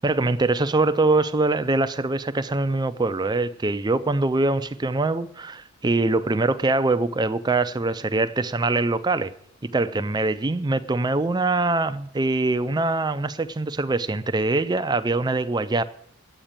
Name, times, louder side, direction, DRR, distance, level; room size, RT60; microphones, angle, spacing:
voice 1, 0.0-9.3 9.6-15.8, right 2 dB, 20° right, 0.4 m, -23 dB
10.0 x 8.9 x 8.9 m
head